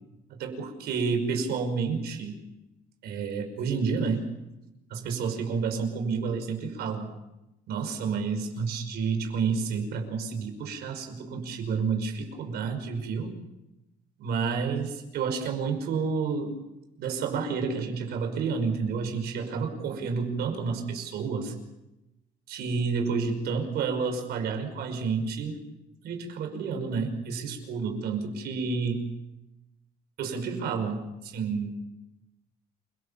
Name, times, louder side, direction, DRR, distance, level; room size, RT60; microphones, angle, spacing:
voice 1, 0.3-2.4 3.0-4.3 4.9-7.1 7.7-13.3 14.2-16.6 17.0-21.5 22.5-25.6 26.0-29.1 30.2-31.7, right 5 dB, 75° right, 5 dB, 5.5 m, -30 dB
28.5 x 18.5 x 7.2 m, 0.92 s
cardioid pair, 110°, 17 cm